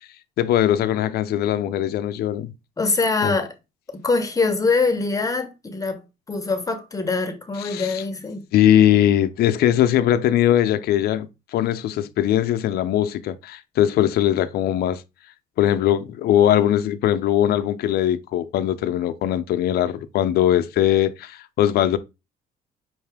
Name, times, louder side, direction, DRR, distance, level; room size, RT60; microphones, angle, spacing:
voice 1, 0.4-2.5 3.2-3.4 7.6-8.0 8.5-15.0 15.6-22.0, left 11 dB, 70° left, 0.6 m, -20 dB
voice 2, 2.8-3.5 3.9-6.0 6.3-8.5, left 4 dB, 20° left, 0.8 m, -23 dB
5.7 x 2.7 x 3.4 m
cardioid pair, 110°, 17 cm